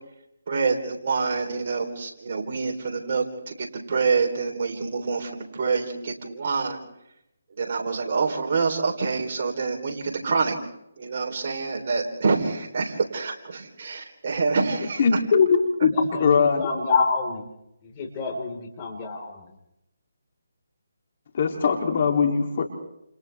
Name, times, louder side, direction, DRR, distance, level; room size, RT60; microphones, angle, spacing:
voice 1, 0.5-6.8 7.6-10.5 11.0-15.0, right 4 dB, 50° right, 1 dB, 3.7 m, -26 dB
voice 2, 15.0-15.9 16.2-16.7 21.3-22.6, left 6 dB, 45° left, 3 dB, 3.1 m, -20 dB
voice 3, 15.9-17.5 17.8-19.5, left 4 dB, 30° left, 1 dB, 4.6 m, -28 dB
29.0 x 29.0 x 3.5 m, 0.83 s
figure-of-eight pair, 155°, 0 cm